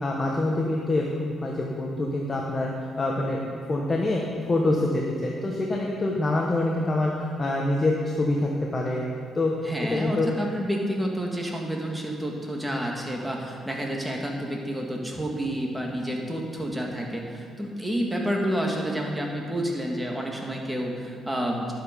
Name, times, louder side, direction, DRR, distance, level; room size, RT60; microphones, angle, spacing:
voice 1, 0.0-3.4 3.7-4.2 4.5-9.0 9.3-9.5 9.9-10.3, left 2 dB, 30° left, -2 dB, 1.2 m, -25 dB
voice 2, 9.6-21.7, equal, 5° right, 0 dB, 1.9 m, -29 dB
11.0 x 7.7 x 5.2 m, 2.2 s
cardioid pair, 90°, 0 cm